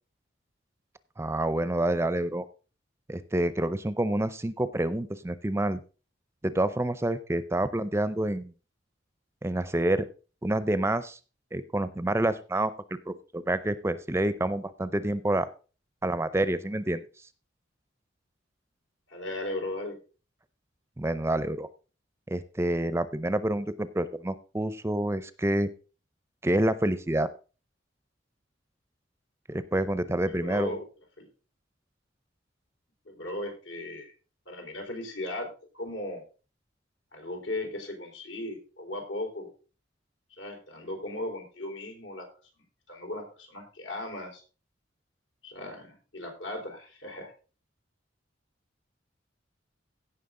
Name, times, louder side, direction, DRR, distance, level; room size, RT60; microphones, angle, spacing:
voice 1, 1.2-2.5 3.1-5.8 6.4-8.5 9.4-10.1 10.4-11.2 11.5-12.7 13.1-15.5 16.0-17.0 21.0-21.7 22.3-25.7 26.4-27.3 29.5-30.8, right 1 dB, 15° right, 14 dB, 0.5 m, -28 dB
voice 2, 19.1-20.0 30.2-30.8 31.2-31.3 33.1-34.1 34.5-35.5 35.7-36.2 37.1-39.5 40.4-42.3 42.9-44.4 45.4-47.3, left 1 dB, 85° left, 1 dB, 4.0 m, -37 dB
16.5 x 5.9 x 3.7 m, 0.36 s
head